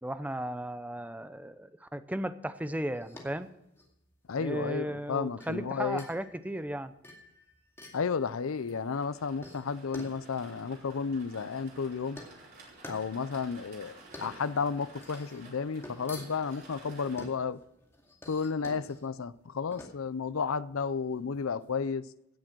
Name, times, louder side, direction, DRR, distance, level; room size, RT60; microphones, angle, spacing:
voice 1, 0.0-3.5 4.4-6.9, right 1 dB, 5° right, 0.6 m, -35 dB
sound 1, 2.9-21.7, left 1 dB, 10° left, 2.2 m, -50 dB
voice 2, 4.3-6.0 7.9-12.2 12.9-17.6 18.3-22.0, left 5 dB, 70° left, 0.5 m, -32 dB
sound 2, 8.2-17.3, right 2 dB, 50° right, 4.6 m, -53 dB
16.5 x 7.4 x 6.1 m
head